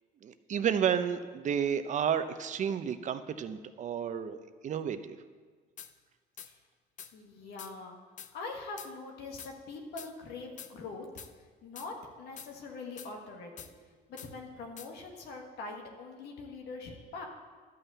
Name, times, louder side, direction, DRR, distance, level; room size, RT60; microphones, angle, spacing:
voice 1, 0.2-5.2, right 8 dB, 45° right, 10 dB, 0.7 m, -31 dB
sound 1, 5.8-5.9 6.4-6.5 7.0-7.1 7.6-7.7 8.2-8.3 8.8-8.9 9.4-9.5 10.0-10.1 10.6-10.7 11.2-11.3 11.8-11.9 12.4-12.5 13.0-13.1 13.6-13.7 14.2-14.3 14.8-14.9, left 8 dB, 45° left, 0.6 m, -46 dB
voice 2, 7.1-8.0 8.3-11.1 11.6-13.7 14.1-17.3, left 3 dB, 80° left, 1 dB, 1.7 m, -43 dB
12.0 x 5.7 x 8.0 m, 1.5 s
cardioid pair, 110°, 17 cm